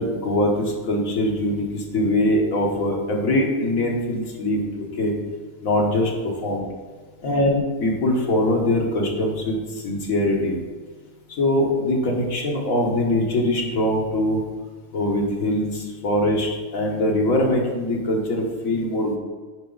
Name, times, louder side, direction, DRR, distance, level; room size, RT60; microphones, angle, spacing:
voice 1, 0.0-5.1 5.6-6.1 6.4-6.7 7.2-9.6 9.8-10.6 11.4-14.4 14.9-19.2, left 1 dB, 90° left, -1 dB, 1.8 m, -22 dB
9.3 x 4.9 x 3.9 m, 1.4 s
omnidirectional pair, 1.4 m